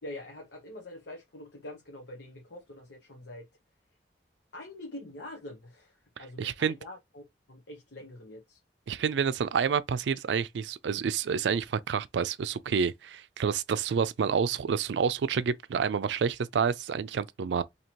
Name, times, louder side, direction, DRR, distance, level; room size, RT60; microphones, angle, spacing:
voice 1, 0.0-3.5 4.5-8.6, left 1 dB, 85° left, 0.9 m, -45 dB
voice 2, 6.4-6.8 8.9-17.6, right 6 dB, 85° right, 0.4 m, -28 dB
2.9 x 2.8 x 4.4 m
head